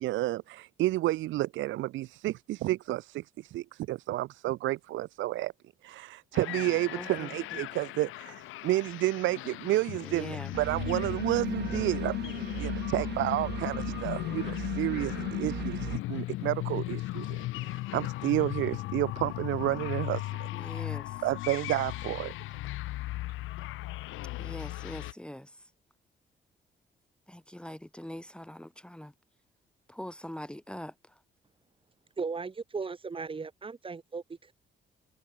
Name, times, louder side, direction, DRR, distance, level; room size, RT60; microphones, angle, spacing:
voice 1, 0.0-5.5 5.8-20.5 21.2-22.3, right 16 dB, 75° right, 0.5 m, -31 dB
sound 1, 6.3-25.1, left 18 dB, 85° left, 0.6 m, -36 dB
voice 2, 6.9-7.6 10.0-10.5 20.5-21.2 24.4-25.7 27.3-29.1 29.9-31.2, left 1 dB, 5° left, 1.8 m, -43 dB
sound 2, 10.5-16.0, right 10 dB, 55° right, 1.2 m, -38 dB
voice 3, 32.2-34.5, right 4 dB, 25° right, 1.1 m, -37 dB
cardioid pair, 90°, 20 cm